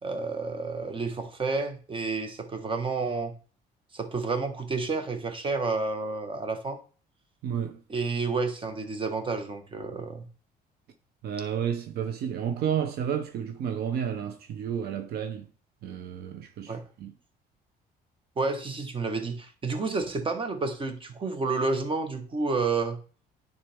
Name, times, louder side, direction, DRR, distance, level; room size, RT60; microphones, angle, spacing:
voice 1, 0.0-3.3 3.9-6.8 7.9-10.3 16.7-16.8 18.4-23.0, right 4 dB, 30° right, 1.3 m, -30 dB
voice 2, 7.4-7.8 11.2-15.5 15.8-17.1, right 8 dB, 70° right, 0.7 m, -31 dB
9.9 x 4.2 x 3.5 m
cardioid pair, 110°, 17 cm